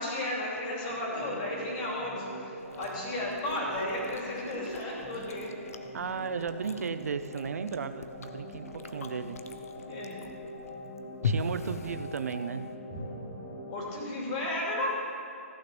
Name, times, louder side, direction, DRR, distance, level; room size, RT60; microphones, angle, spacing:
voice 1, 0.0-5.5 8.5-8.7 9.8-10.2 12.9-13.0 13.6-14.9, left 1 dB, 30° left, -3 dB, 3.0 m, -34 dB
sound 1, 0.8-13.8, equal, 15° right, 2.9 m, -44 dB
Chewing mastication, 2.6-12.8, left 4 dB, 75° left, 0.9 m, -41 dB
voice 2, 5.9-9.4 11.2-12.7, right 6 dB, 80° right, 11 dB, 0.6 m, -35 dB
15.0 x 6.3 x 7.2 m, 2.7 s
hypercardioid pair, 170°, 8 cm